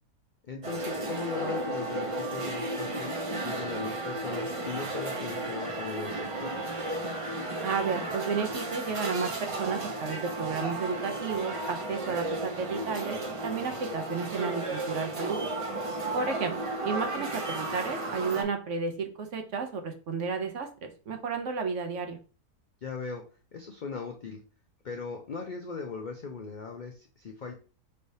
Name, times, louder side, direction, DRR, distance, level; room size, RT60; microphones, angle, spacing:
voice 1, 0.5-3.1 3.4-6.5 22.8-23.2 23.5-24.4 24.8-27.5, left 4 dB, 75° left, 2 dB, 0.4 m, -39 dB
sound 1, 0.6-18.4, right 2 dB, 35° right, 0.5 m, -34 dB
voice 2, 7.6-13.2 13.4-15.4 16.1-16.6 16.8-22.2, right 5 dB, 60° right, 6 dB, 0.9 m, -32 dB
5.3 x 3.4 x 2.7 m, 0.36 s
omnidirectional pair, 1.6 m